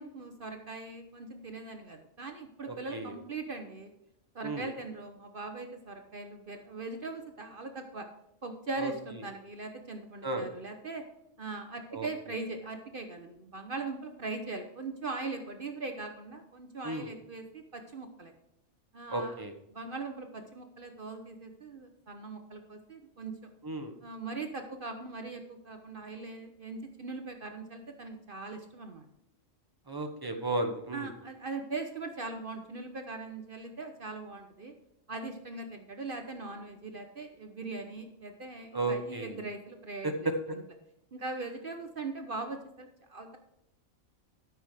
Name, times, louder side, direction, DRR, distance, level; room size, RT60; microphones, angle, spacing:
voice 1, 0.0-3.9 4.3-8.1 8.4-11.0 11.4-18.3 18.9-19.4 19.7-23.4 24.0-29.0 30.9-34.7 35.1-40.3 41.1-43.4, right 3 dB, 45° right, 5 dB, 1.0 m, -40 dB
voice 2, 2.6-3.1 4.4-4.7 8.8-8.9 10.2-10.4 11.9-12.1 16.8-17.1 19.1-19.5 23.6-23.9 29.9-31.1 38.7-39.4 40.0-40.6, right 2 dB, 20° right, 5 dB, 1.0 m, -33 dB
12.5 x 6.2 x 4.9 m, 0.83 s
omnidirectional pair, 1.4 m